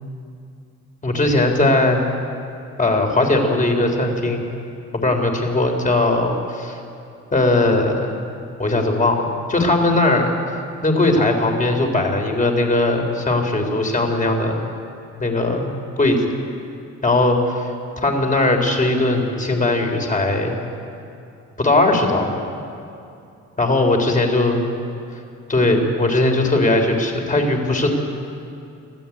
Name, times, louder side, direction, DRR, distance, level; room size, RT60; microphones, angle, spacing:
voice 1, 1.0-2.0 2.8-4.4 4.9-6.8 7.3-8.1 8.6-10.3 10.8-14.6 15.2-15.7 16.0-16.2 17.0-17.7 18.0-20.6 21.6-22.3 23.6-24.6 25.5-27.9, left 2 dB, 25° left, 3 dB, 4.1 m, -19 dB
25.5 x 15.0 x 8.8 m, 2.6 s
cardioid pair, 90°, 30 cm